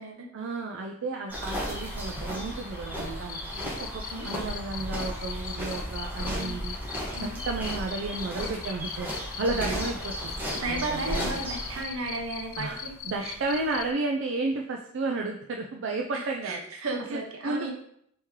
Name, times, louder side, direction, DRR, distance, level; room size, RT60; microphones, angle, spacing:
voice 1, 0.3-6.8 7.2-9.1 9.4-10.3 10.7-11.4 12.6-16.6 17.1-17.7, right 3 dB, 60° right, 2 dB, 0.4 m, -32 dB
sound 1, 1.3-11.8, equal, 10° right, 1.1 m, -34 dB
Cricket, 3.2-13.9, left 8 dB, 65° left, 0.4 m, -41 dB
voice 2, 3.9-4.3 6.3-6.6 7.1-7.4 9.5-9.8 10.5-12.9 13.2-13.3 16.4-17.7, right 2 dB, 75° right, 2 dB, 0.9 m, -34 dB
4.3 x 3.1 x 3.6 m, 0.69 s
head